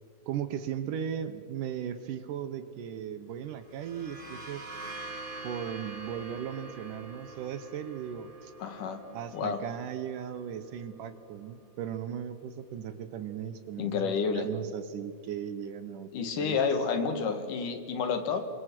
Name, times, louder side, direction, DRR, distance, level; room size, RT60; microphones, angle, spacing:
voice 1, 0.3-4.6 5.4-8.5 9.1-16.6, right 9 dB, 70° right, 11 dB, 2.3 m, -37 dB
sound 1, 3.6-11.2, right 2 dB, 15° right, 2.4 m, -45 dB
voice 2, 8.6-9.0 9.3-9.6 13.8-14.5 16.1-18.5, left 5 dB, 65° left, 8 dB, 3.0 m, -30 dB
28.0 x 24.5 x 6.1 m, 2.2 s
omnidirectional pair, 4.2 m